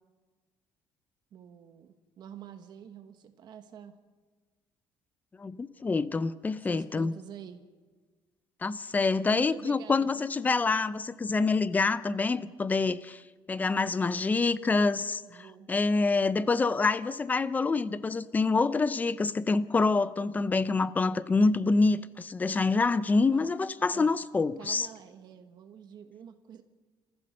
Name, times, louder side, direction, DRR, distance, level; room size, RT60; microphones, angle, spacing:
voice 1, 1.3-3.9 6.6-7.6 9.3-10.4 15.2-15.7 23.3-23.5 23.9-24.1 24.6-26.6, right 8 dB, 50° right, 1.3 m, -47 dB
voice 2, 5.4-7.1 8.6-13.2 13.5-15.2 15.7-24.9, left 3 dB, 20° left, 0.6 m, -26 dB
29.0 x 15.0 x 6.6 m
cardioid pair, 150°, 9 cm